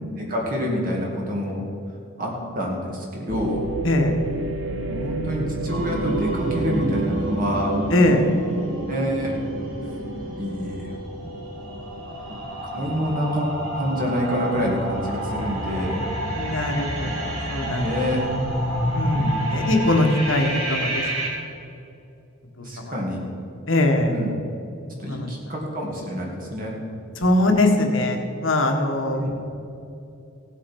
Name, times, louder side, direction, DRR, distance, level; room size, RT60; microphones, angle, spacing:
voice 1, 0.2-1.6 2.2-3.6 4.9-7.8 8.9-9.4 10.4-11.1 12.7-13.5 13.8-16.0 17.6-18.2 19.2-19.3 22.6-23.2 24.0-24.3 25.0-26.8 29.1-29.4, equal, 40° right, -2 dB, 2.3 m, -27 dB
sound 1, 3.3-13.2 13.7-13.8 14.5-14.9, right 2 dB, 60° right, 0.9 m, -32 dB
voice 2, 3.8-4.2 7.9-8.2 16.4-17.9 18.9-21.0 22.8-22.9 23.7-24.1 25.0-25.3 27.2-29.3, left 1 dB, 65° left, 4 dB, 1.4 m, -21 dB
sound 2, 5.7-21.3, right 1 dB, 90° right, 3.0 m, -29 dB
17.0 x 7.6 x 5.3 m, 2.8 s
head